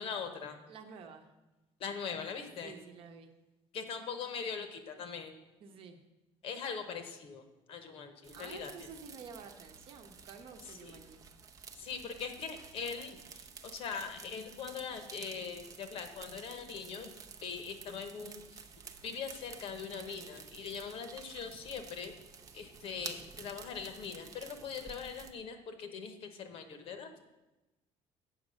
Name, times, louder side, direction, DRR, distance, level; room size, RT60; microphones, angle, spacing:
voice 1, 0.0-0.6 1.8-2.7 3.7-5.3 6.4-7.4 7.7-8.9 10.8-11.0 11.8-17.1 17.4-18.6 19.0-22.2 22.5-27.1, left 6 dB, 50° left, 7 dB, 1.0 m, -41 dB
voice 2, 0.7-1.3 2.6-3.3 5.6-6.0 8.3-11.2, right 5 dB, 50° right, 5 dB, 0.9 m, -50 dB
sound 1, 8.2-25.3, right 6 dB, 30° right, 0.6 m, -52 dB
8.3 x 6.3 x 6.3 m, 1.1 s
cardioid pair, 165°, 12 cm